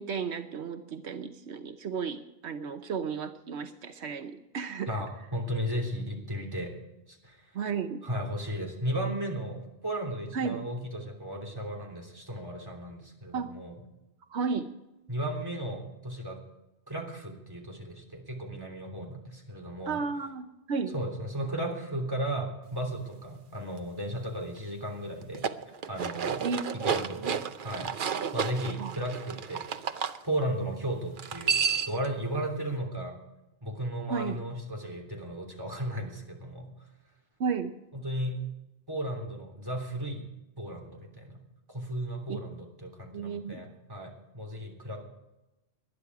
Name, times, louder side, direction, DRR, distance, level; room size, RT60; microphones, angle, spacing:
voice 1, 0.0-5.0 7.5-8.0 10.3-10.6 13.3-13.6 14.3-14.7 19.9-20.9 26.4-26.6 27.1-27.3 28.8-28.9 34.1-34.4 37.4-37.7 42.3-42.4 43.1-43.6, right 5 dB, 80° right, 8 dB, 1.1 m, -33 dB
voice 2, 4.9-6.7 7.1-7.5 8.0-13.8 15.1-16.4 16.9-20.0 20.9-25.5 25.9-26.4 26.7-27.9 28.3-29.6 30.2-33.2 33.6-36.7 37.9-38.4 38.9-40.2 40.6-41.4 41.7-45.0, right 1 dB, 20° right, -1 dB, 3.3 m, -35 dB
sound 1, 25.2-30.2 31.2-32.1, right 7 dB, 55° right, 0.8 m, -31 dB
19.5 x 11.5 x 4.8 m, 0.96 s
omnidirectional pair, 1.1 m